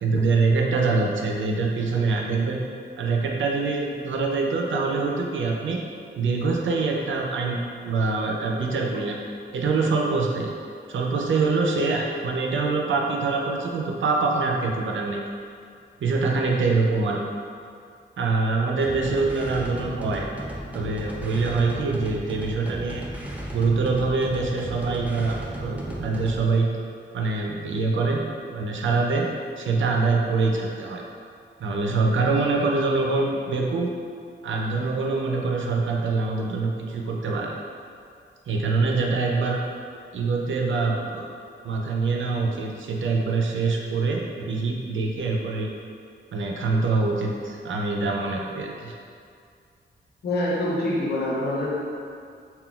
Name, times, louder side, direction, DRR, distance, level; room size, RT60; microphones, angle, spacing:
voice 1, 0.0-2.6 3.0-5.8 6.2-9.2 9.5-10.5 10.9-15.2 16.0-17.2 18.2-20.3 20.7-23.0 23.5-26.7 27.1-28.2 28.5-29.3 29.6-31.0 31.6-33.9 34.4-37.6 38.5-39.6 40.1-41.3 41.6-45.7 46.3-48.9, right 3 dB, 75° right, 0 dB, 0.4 m, -24 dB
sound 1, 18.8-26.5, right 1 dB, 10° right, 0.3 m, -35 dB
voice 2, 50.2-51.8, left 1 dB, 55° left, -7 dB, 0.6 m, -25 dB
3.7 x 2.2 x 2.3 m, 2.3 s
wide cardioid pair, 100°, 20 cm